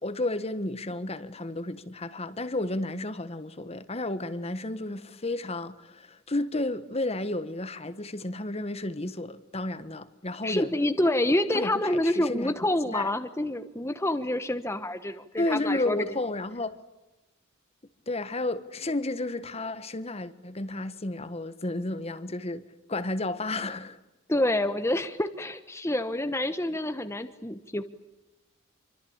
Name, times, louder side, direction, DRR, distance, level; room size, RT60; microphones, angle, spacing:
voice 1, 0.0-10.7 11.5-12.5 12.9-13.1 15.4-16.8 18.1-22.6 22.9-24.0, left 2 dB, 30° left, 1.3 m, -32 dB
voice 2, 10.4-16.0 24.3-27.8, left 1 dB, 15° left, 1.2 m, -27 dB
27.0 x 24.5 x 8.8 m
head